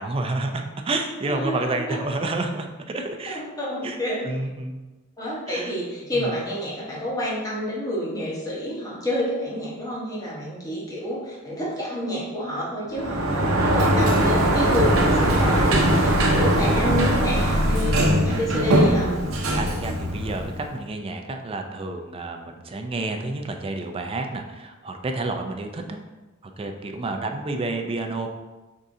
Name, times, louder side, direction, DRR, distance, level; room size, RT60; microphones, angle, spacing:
voice 1, 0.0-3.4 3.8-4.0 4.2-4.8 5.5-5.7 6.1-6.3 15.1-15.6 19.6-26.0 26.6-28.3, right 2 dB, 25° right, 4 dB, 0.4 m, -30 dB
voice 2, 1.2-2.0 3.3-4.3 5.2-19.1, left 1 dB, 15° left, -6 dB, 1.0 m, -29 dB
Sliding door, 12.9-20.7, right 1 dB, 85° right, 0.7 m, -20 dB
5.4 x 3.7 x 2.6 m, 1.1 s
head